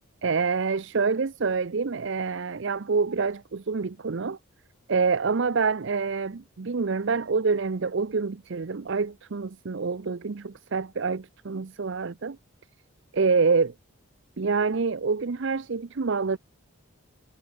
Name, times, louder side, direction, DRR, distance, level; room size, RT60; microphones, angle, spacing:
voice 1, 0.2-4.4 4.9-12.4 13.1-13.7 14.4-16.4, right 4 dB, 55° right, 0.6 m, -26 dB
head